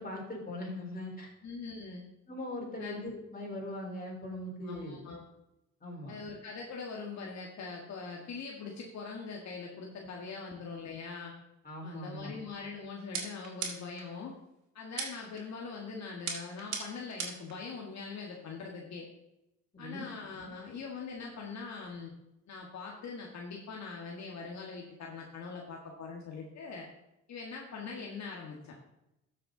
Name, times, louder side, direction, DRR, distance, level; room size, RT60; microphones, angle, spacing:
voice 1, 0.0-1.3 2.3-5.0 5.8-6.2 11.6-12.3 19.7-20.1, left 1 dB, 30° left, -1 dB, 4.1 m, -40 dB
voice 2, 1.4-2.1 2.8-3.0 4.6-5.2 6.1-11.3 11.8-14.4 14.7-19.1 19.8-22.1 22.5-26.9 27.3-28.7, left 4 dB, 65° left, -1 dB, 1.7 m, -42 dB
sound 1, 13.1-14.1 15.0-15.4 16.3-17.5, right 5 dB, 70° right, 2.6 m, -38 dB
13.0 x 6.7 x 3.9 m, 0.89 s
cardioid pair, 90°, 30 cm